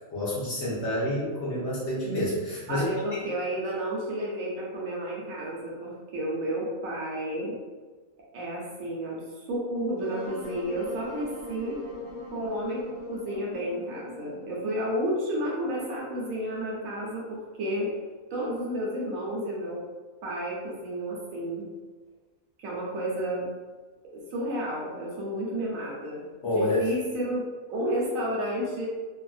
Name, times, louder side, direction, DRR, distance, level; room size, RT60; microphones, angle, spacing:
voice 1, 0.1-2.9 26.4-26.9, left 1 dB, 55° left, -7 dB, 0.9 m, -28 dB
voice 2, 2.7-7.5 8.3-11.8 12.3-17.9 18.3-19.8 20.2-21.7 22.6-23.5 24.3-27.4 27.7-28.8, equal, 70° right, -4 dB, 1.1 m, -31 dB
Wind instrument woodwind instrument, 10.0-15.1, left 1 dB, 25° right, 0.6 m, -40 dB
2.8 x 2.5 x 2.3 m, 1.4 s
omnidirectional pair, 1.5 m